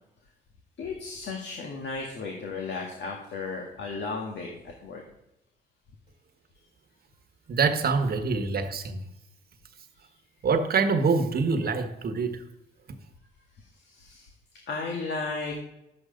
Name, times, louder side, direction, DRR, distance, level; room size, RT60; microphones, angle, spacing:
voice 1, 0.8-5.0 10.0-10.1 11.6-11.7 13.6-15.6, left 4 dB, 65° left, 1.8 m, -35 dB
voice 2, 7.5-9.0 10.4-12.4, right 4 dB, 50° right, 1.4 m, -25 dB
11.0 x 7.9 x 5.1 m
cardioid pair, 90°, 20 cm